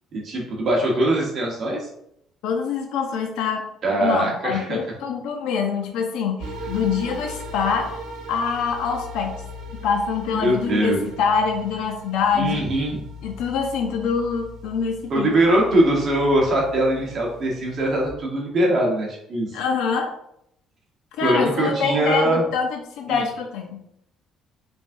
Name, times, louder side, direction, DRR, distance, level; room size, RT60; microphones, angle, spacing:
voice 1, 0.1-1.9 3.8-4.8 10.4-11.0 12.3-13.0 15.1-19.6 21.2-22.4 23.1-23.2, right 1 dB, 35° right, -2 dB, 1.1 m, -21 dB
voice 2, 2.4-3.7 4.0-8.0 8.3-9.4 9.8-12.9 13.2-15.3 19.5-20.1 21.2-23.8, left 6 dB, 80° left, 3 dB, 0.5 m, -25 dB
sound 1, 6.4-18.1, left 1 dB, 70° right, 0.9 m, -39 dB
5.2 x 3.4 x 2.6 m, 0.74 s
cardioid pair, 175°, 0 cm